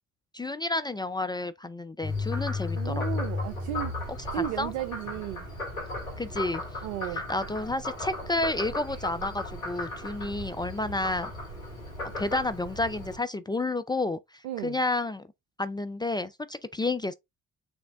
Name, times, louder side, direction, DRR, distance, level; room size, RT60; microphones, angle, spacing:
voice 1, 0.3-3.0 4.3-4.7 6.2-6.6 7.1-11.3 12.2-14.2 14.6-15.3 15.6-17.1, left 2 dB, 10° left, 0.4 m, -30 dB
Frog, 2.0-13.2, left 2 dB, 85° left, 1.6 m, -35 dB
voice 2, 2.7-3.9 4.3-5.4 6.8-7.2 14.4-14.8, right 11 dB, 75° right, 0.6 m, -34 dB
6.2 x 3.3 x 2.3 m
figure-of-eight pair, 45°, 39 cm